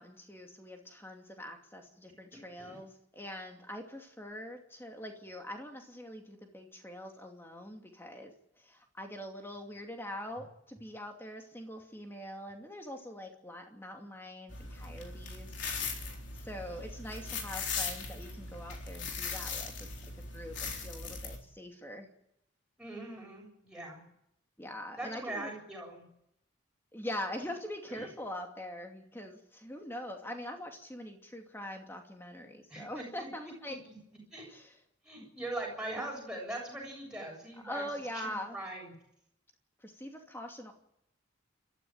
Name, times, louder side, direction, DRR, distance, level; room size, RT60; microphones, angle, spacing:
voice 1, 0.0-15.5 15.8-19.9 20.3-22.1 24.6-25.5 26.9-33.8 34.5-34.7 35.2-35.3 37.6-38.6 39.8-40.7, left 1 dB, 10° left, 3 dB, 2.6 m, -43 dB
sound 1, 14.5-21.4, left 4 dB, 60° left, 3.8 m, -39 dB
voice 2, 22.8-24.0 25.0-26.0 27.4-27.5 27.9-28.1 32.7-33.3 33.7-34.0 34.3-34.5 35.0-37.8 38.1-38.9, right 1 dB, 5° right, -2 dB, 7.5 m, -41 dB
29.5 x 13.5 x 9.1 m, 0.80 s
head